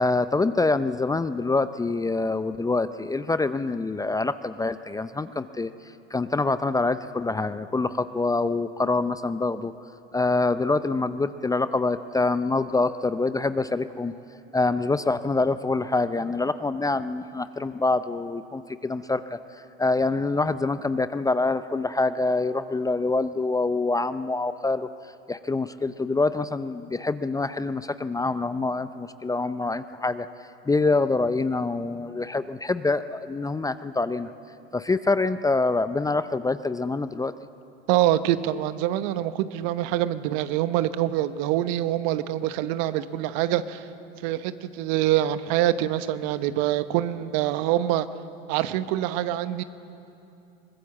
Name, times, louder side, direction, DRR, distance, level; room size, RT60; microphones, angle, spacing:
voice 1, 0.0-9.7 10.1-14.1 14.5-34.3 34.7-37.3, left 3 dB, 10° left, 13 dB, 0.6 m, -26 dB
voice 2, 37.9-43.9 44.2-48.1 48.5-49.6, right 13 dB, 55° right, 13 dB, 1.1 m, -25 dB
23.0 x 20.5 x 7.4 m, 2.8 s
hypercardioid pair, 85°, 32 cm